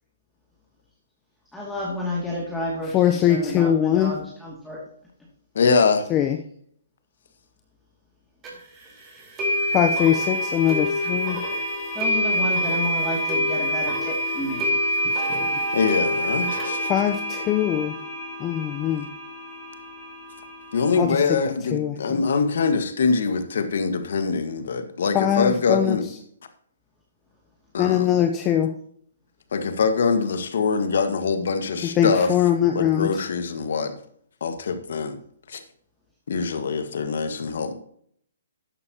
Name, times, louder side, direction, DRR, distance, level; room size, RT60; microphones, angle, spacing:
voice 1, 1.5-4.8 11.9-14.7, left 1 dB, 5° left, -5 dB, 2.5 m, -30 dB
voice 2, 2.9-4.1 6.1-6.4 9.7-11.4 15.1-15.5 16.8-17.9 18.4-19.1 21.0-21.2 21.7-22.2 25.1-26.0 27.8-28.7 32.0-33.2, left 10 dB, 20° left, 5 dB, 0.8 m, -22 dB
voice 3, 5.6-6.0 15.7-16.9 20.7-26.1 27.7-28.1 29.5-32.3 32.7-33.9 34.4-35.2 35.5-35.6 36.3-37.7, left 5 dB, 65° left, 8 dB, 1.7 m, -23 dB
sound 1, 8.4-8.5 9.4-21.0, equal, 20° right, 4.1 m, -26 dB
13.0 x 9.6 x 3.0 m, 0.64 s
hypercardioid pair, 145°, 0 cm